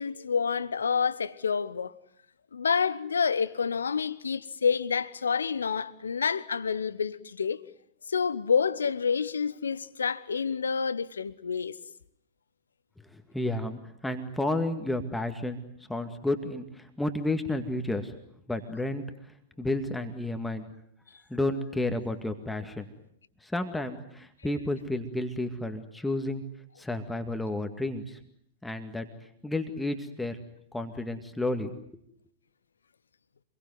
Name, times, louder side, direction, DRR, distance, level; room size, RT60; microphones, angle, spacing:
voice 1, 0.0-1.9 2.5-7.6 8.1-11.8, left 6 dB, 75° left, 1.1 m, -28 dB
voice 2, 13.1-15.6 15.9-18.1 18.5-19.0 19.6-20.7 21.3-22.9 23.4-26.4 26.8-28.2 28.6-29.1 29.4-30.4 30.7-32.0, left 2 dB, 5° left, 2.1 m, -31 dB
27.0 x 22.5 x 9.5 m
figure-of-eight pair, 100°, 0 cm